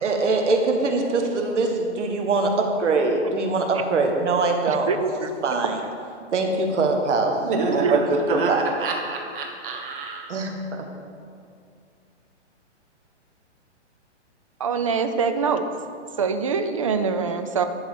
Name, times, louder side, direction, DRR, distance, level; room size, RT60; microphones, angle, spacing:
voice 1, 0.0-2.5 2.8-5.1 5.4-5.8 6.3-7.4 7.7-8.0 8.3-8.6 10.3-10.5 10.8-10.9, right 3 dB, 75° right, 3 dB, 1.5 m, -22 dB
voice 2, 7.4-10.3, right 3 dB, 45° right, 1 dB, 1.6 m, -27 dB
voice 3, 14.6-15.7 16.2-17.7, right 5 dB, 30° right, 8 dB, 0.4 m, -24 dB
11.0 x 4.0 x 6.6 m, 2.3 s
hypercardioid pair, 155°, 36 cm